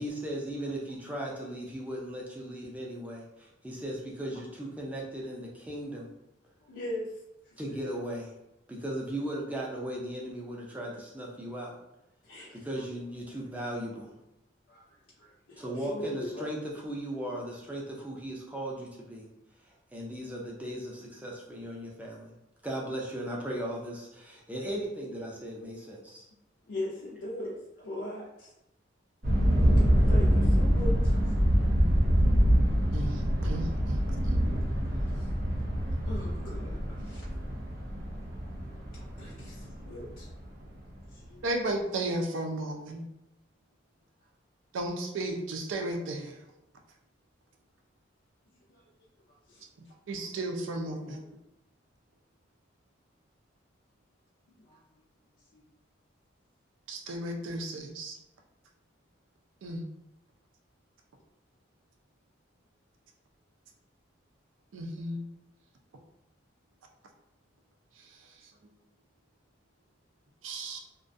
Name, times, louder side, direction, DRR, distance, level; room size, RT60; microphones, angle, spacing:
voice 1, 0.0-6.1 7.6-8.3 8.7-11.8 12.5-14.1 15.6-19.3 19.7-22.3 22.6-26.2, right 1 dB, 10° right, -3 dB, 0.4 m, -37 dB
voice 2, 6.6-7.1 12.2-12.6 14.7-14.8 15.2-16.5 26.7-28.5 29.8-31.9 34.9-35.3 36.1-37.2 39.1-40.3 41.1-41.4 48.7-48.8 49.5-49.6 51.0-51.2 54.7-54.8 55.5-55.6, left 1 dB, 70° left, -5 dB, 0.4 m, -40 dB
sound 1, 29.2-40.8, equal, 55° right, 0.7 m, -25 dB
voice 3, 32.9-34.0 34.3-34.4 41.4-43.1 44.7-46.3 50.1-51.2 56.9-58.2 59.6-59.9 64.7-65.3 70.4-70.8, right 1 dB, 85° right, 2 dB, 0.4 m, -34 dB
2.4 x 2.2 x 2.5 m, 0.87 s
head